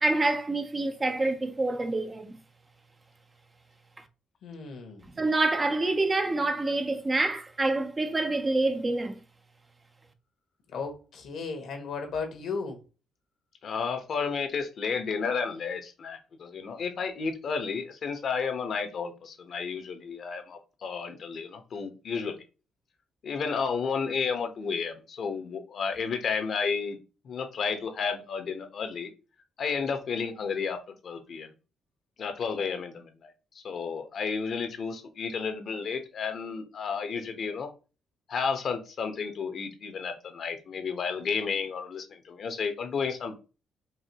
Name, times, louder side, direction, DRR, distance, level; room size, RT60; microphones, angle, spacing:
voice 1, 0.0-2.4 5.2-9.2, right 2 dB, 25° right, 0.7 m, -27 dB
voice 2, 4.4-5.0 10.7-12.8, left 4 dB, 75° left, 1.5 m, -35 dB
voice 3, 13.6-22.4 23.2-27.0 27.2-29.1 29.6-31.5 32.2-37.7 38.3-43.3, left 5 dB, 55° left, 1.1 m, -32 dB
4.8 x 2.9 x 2.9 m
cardioid pair, 90°, 0 cm